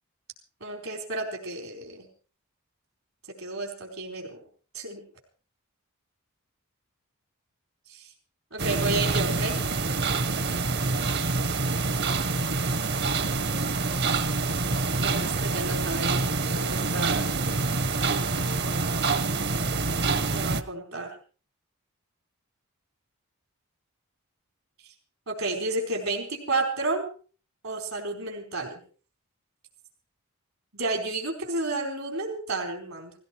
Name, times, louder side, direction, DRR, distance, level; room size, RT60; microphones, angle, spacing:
voice 1, 0.6-2.1 3.4-4.4 4.7-5.0 7.9-8.1 8.5-9.6 15.0-18.3 20.3-21.1 25.3-27.1 27.6-28.8 30.7-33.1, right 2 dB, 75° right, 3 dB, 4.4 m, -32 dB
sound 1, 8.6-20.6, right 3 dB, 55° right, 1.2 m, -26 dB
17.5 x 17.0 x 4.6 m, 0.39 s
head